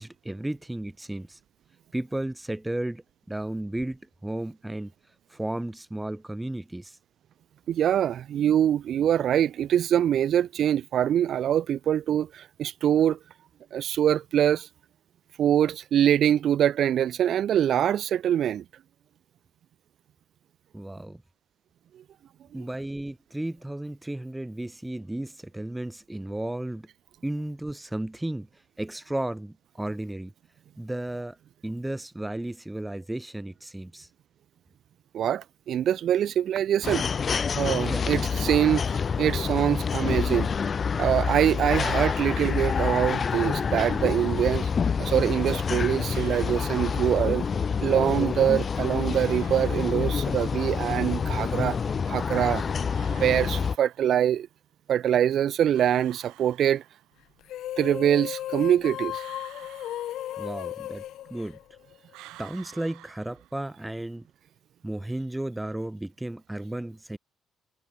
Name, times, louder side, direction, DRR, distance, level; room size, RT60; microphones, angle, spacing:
voice 1, 0.0-1.4 1.9-4.9 5.3-7.0 20.7-21.2 22.5-26.9 27.2-30.3 30.8-31.4 31.6-34.1 37.8-38.0 60.4-61.6 62.4-64.3 64.8-67.2, right 1 dB, 10° right, 1.8 m, -34 dB
voice 2, 7.7-13.2 13.7-14.7 15.4-18.6 35.1-37.1 37.6-40.5 41.0-44.7 45.0-47.4 47.8-51.8 52.1-52.7 53.1-54.5 54.9-56.8 57.8-59.2, right 10 dB, 60° right, 2.9 m, -24 dB
sound 1, 36.8-53.8, left 6 dB, 40° left, 0.4 m, -27 dB
sound 2, 46.1-47.6 49.1-50.6 52.9-54.4 55.7-57.3 59.1-60.8 62.1-64.0, right 19 dB, 90° right, 6.8 m, -52 dB
sound 3, 57.4-62.1, left 13 dB, 70° left, 7.5 m, -35 dB
cardioid pair, 100°, 0 cm